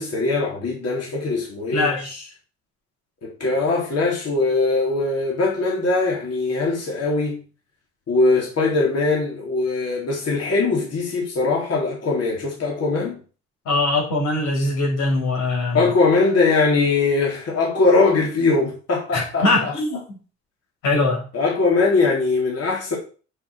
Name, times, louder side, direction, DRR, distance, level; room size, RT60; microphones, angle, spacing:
voice 1, 0.0-1.9 3.2-7.4 8.1-13.2 15.7-19.7 21.3-23.0, left 3 dB, 55° left, 3.7 m, -21 dB
voice 2, 1.7-2.2 13.7-15.8 19.1-20.2 20.8-21.2, left 2 dB, 90° left, 5.7 m, -22 dB
7.4 x 7.1 x 6.6 m
cardioid pair, 90°, 30 cm